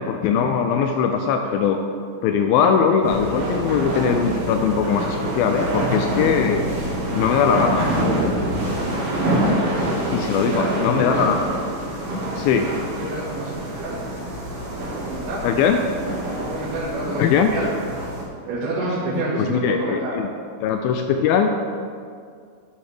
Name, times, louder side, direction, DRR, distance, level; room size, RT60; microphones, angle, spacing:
voice 1, 0.0-1.8 2.2-6.7 7.1-7.9 10.1-11.5 12.4-12.7 15.4-15.8 17.2-17.5 19.4-20.3 20.6-21.5, left 7 dB, 80° left, 5 dB, 2.2 m, -20 dB
sound 1, 3.0-18.2, right 1 dB, 50° right, 2.6 m, -26 dB
voice 2, 9.7-10.7 13.0-14.0 14.8-15.4 16.3-17.7 18.5-20.1, right 2 dB, 90° right, -9 dB, 3.4 m, -28 dB
10.5 x 8.4 x 3.4 m, 2.2 s
omnidirectional pair, 4.4 m